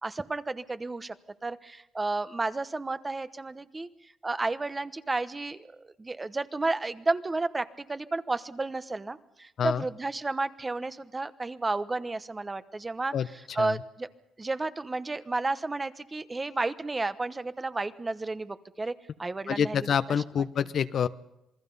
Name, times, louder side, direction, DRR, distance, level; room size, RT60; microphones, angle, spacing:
voice 1, 0.0-1.1 1.4-3.9 4.2-5.6 5.8-14.1 14.4-18.9 19.2-19.9 20.3-20.4, right 3 dB, 20° right, 12 dB, 1.0 m, -32 dB
voice 2, 19.5-21.1, left 8 dB, 60° left, 12 dB, 0.8 m, -27 dB
27.5 x 20.5 x 5.4 m, 0.89 s
cardioid pair, 90°, 0 cm